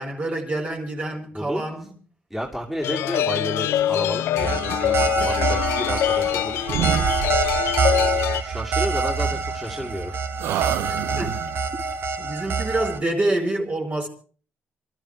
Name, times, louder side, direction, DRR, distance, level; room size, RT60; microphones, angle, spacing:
voice 1, 0.0-2.0 10.8-11.4 12.2-14.1, right 2 dB, 35° right, 4.5 m, -27 dB
voice 2, 1.3-1.8 2.3-7.1 7.9-8.1 8.4-10.2, equal, 5° right, 2.9 m, -31 dB
sound 1, 2.8-8.4, left 11 dB, 80° left, 0.7 m, -24 dB
sound 2, 4.4-13.0, right 4 dB, 65° right, 2.0 m, -26 dB
sound 3, 5.6-6.4 6.7-7.8 9.2-10.0 10.4-11.6, right 11 dB, 85° right, 0.7 m, -29 dB
26.0 x 13.0 x 3.3 m
cardioid pair, 80°, 4 cm